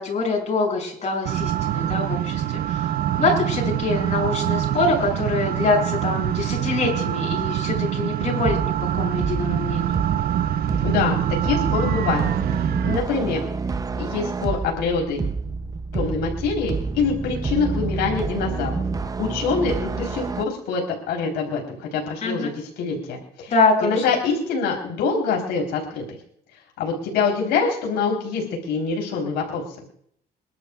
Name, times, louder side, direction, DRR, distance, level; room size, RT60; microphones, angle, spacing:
voice 1, 0.0-10.0 22.2-22.5 23.5-23.9, left 3 dB, 45° left, -1 dB, 7.2 m, -24 dB
sound 1, 1.2-13.0, right 12 dB, 65° right, 0.6 m, -25 dB
sound 2, 8.4-20.4, right 4 dB, 20° right, 0.6 m, -28 dB
voice 2, 10.8-12.3 12.6-13.4 14.0-15.2 15.9-18.7 19.2-23.5 23.8-26.2 26.8-29.6, left 5 dB, 85° left, 0 dB, 3.8 m, -25 dB
27.5 x 12.0 x 2.4 m, 0.67 s
cardioid pair, 110°, 17 cm